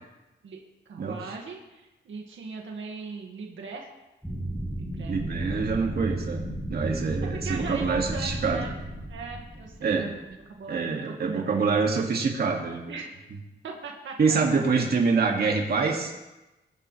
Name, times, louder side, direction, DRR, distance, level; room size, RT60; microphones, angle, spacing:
voice 1, 0.9-3.9 4.8-5.2 5.4-5.8 7.3-8.8 9.1-11.8 12.9-13.1 13.6-14.6, right 4 dB, 80° right, 0 dB, 2.0 m, -39 dB
sound 1, 4.2-10.4, right 1 dB, ahead, 2.5 m, -33 dB
voice 2, 5.1-6.4 6.7-8.7 9.8-10.1 10.7-12.9 14.2-16.2, right 4 dB, 55° right, 0 dB, 2.2 m, -25 dB
22.5 x 11.5 x 3.3 m, 1.0 s
wide cardioid pair, 125°, 19 cm